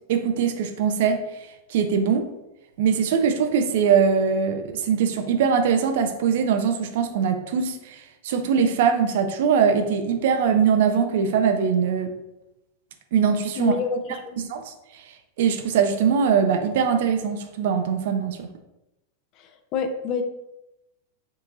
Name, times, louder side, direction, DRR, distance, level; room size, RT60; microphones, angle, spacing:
voice 1, 0.1-2.2 2.8-12.1 13.1-13.7 14.4-18.5, right 6 dB, 55° right, 6 dB, 0.3 m, -22 dB
voice 2, 13.6-14.4 19.4-20.2, left 5 dB, 40° left, 7 dB, 0.4 m, -28 dB
3.5 x 2.7 x 2.7 m, 0.93 s
figure-of-eight pair, 90°, 0 cm